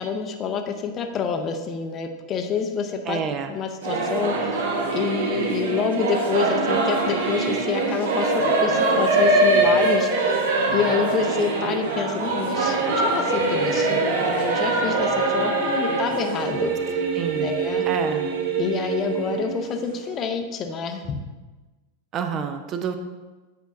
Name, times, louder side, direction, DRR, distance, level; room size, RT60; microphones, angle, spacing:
voice 1, 0.0-3.2 3.5-4.5 4.9-10.4 10.7-17.0 17.4-17.9 18.6-21.2, left 6 dB, 30° left, 6 dB, 0.6 m, -27 dB
voice 2, 3.1-3.5 17.1-17.6 17.9-18.3 22.1-22.9, right 7 dB, 30° right, 7 dB, 0.5 m, -28 dB
Singing / Musical instrument, 3.8-20.1, right 3 dB, 60° right, 0.8 m, -23 dB
8.0 x 4.6 x 2.6 m, 1.2 s
figure-of-eight pair, 90°, 0 cm